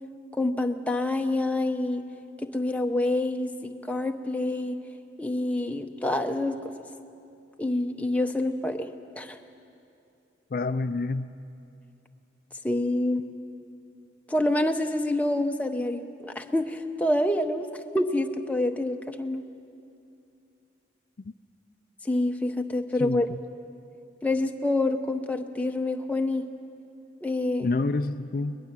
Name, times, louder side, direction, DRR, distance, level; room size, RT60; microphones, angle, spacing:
voice 1, 0.4-2.0 2.4-4.8 5.2-6.9 7.6-8.9 9.2-9.4 12.6-13.2 14.3-17.7 17.9-19.4 22.0-23.3 24.2-26.4 27.2-27.7, left 1 dB, 10° left, 4 dB, 0.8 m, -27 dB
voice 2, 10.5-11.3 21.2-21.3 23.0-23.4 27.6-28.6, left 3 dB, 50° left, 10 dB, 0.4 m, -28 dB
21.5 x 20.5 x 7.4 m, 2.6 s
head